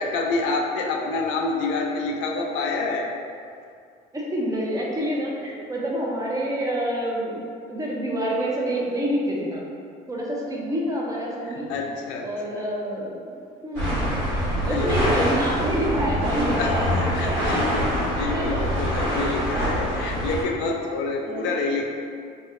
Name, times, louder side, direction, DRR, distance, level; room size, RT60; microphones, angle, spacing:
voice 1, 0.0-3.1 11.4-12.7 14.6-15.1 16.6-21.8, left 3 dB, 75° left, 1 dB, 0.4 m, -28 dB
voice 2, 4.1-9.6 10.1-11.7 12.2-13.4 13.6-14.2 14.6-16.8 17.2-17.7 18.3-18.6 21.2-21.5, equal, 15° right, -4 dB, 0.5 m, -27 dB
sound 1, 13.7-20.4, equal, 70° right, 1.3 m, -25 dB
2.3 x 2.1 x 3.5 m, 2.3 s
cardioid pair, 100°, 19 cm